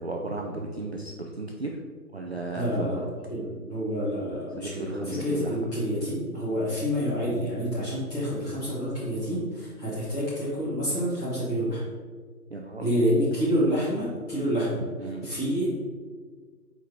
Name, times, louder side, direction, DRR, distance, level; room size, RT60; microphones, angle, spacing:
voice 1, 0.0-1.8 2.1-3.1 4.6-5.7 12.5-12.9 15.0-15.3, right 2 dB, 45° right, 0 dB, 0.5 m, -35 dB
voice 2, 2.5-3.0 3.3-11.8 12.8-14.8 15.2-15.8, equal, 10° left, -12 dB, 1.7 m, -28 dB
4.7 x 4.5 x 4.6 m, 1.5 s
figure-of-eight pair, 150°, 47 cm